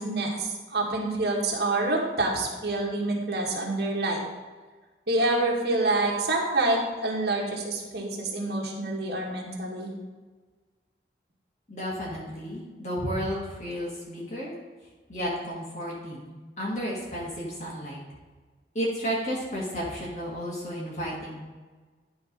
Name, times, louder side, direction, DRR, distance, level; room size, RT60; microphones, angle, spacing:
voice 1, 0.0-4.2 5.1-9.9, right 2 dB, 70° right, -2 dB, 1.7 m, -27 dB
voice 2, 11.7-14.6 15.1-18.0 18.7-21.4, equal, 40° left, -4 dB, 1.7 m, -32 dB
11.0 x 3.8 x 5.1 m, 1.4 s
head